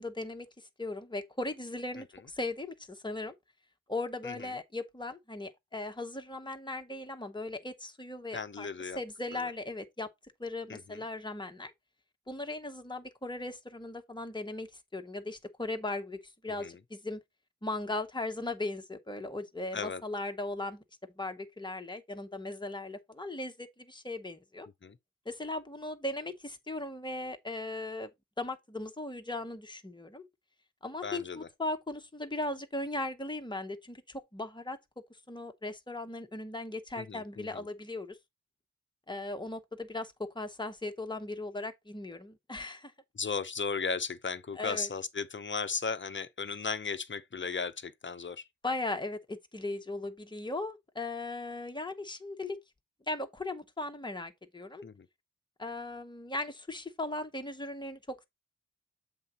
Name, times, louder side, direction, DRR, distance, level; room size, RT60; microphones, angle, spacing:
voice 1, 0.0-3.3 3.9-8.7 9.0-10.1 10.4-11.7 12.3-17.2 17.6-20.8 21.2-24.7 25.2-28.1 28.4-30.3 30.8-34.8 35.3-38.2 39.1-42.9 44.6-44.9 48.6-52.6 53.1-54.8 55.6-58.2, left 2 dB, 15° left, 1.1 m, -38 dB
voice 2, 8.3-9.0 9.3-9.5 10.7-11.0 16.6-16.8 19.7-20.0 24.8-25.0 31.0-31.5 37.0-37.7 43.1-48.5 54.8-55.1, left 5 dB, 40° left, 0.8 m, -36 dB
7.6 x 3.8 x 4.3 m
wide cardioid pair, 95°, 30 cm